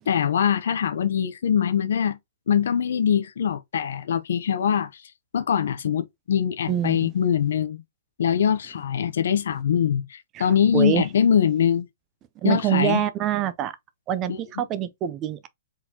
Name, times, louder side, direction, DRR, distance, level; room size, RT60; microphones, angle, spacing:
voice 1, 0.1-2.2 2.5-7.8 8.2-11.9 12.4-13.0 14.3-14.4, left 8 dB, 65° left, 0.7 m, -23 dB
voice 2, 6.7-7.1 10.3-10.5 10.7-11.0 12.4-13.8 14.1-15.5, right 11 dB, 20° right, 0.5 m, -25 dB
4.5 x 3.8 x 2.8 m
hypercardioid pair, 165°, 0 cm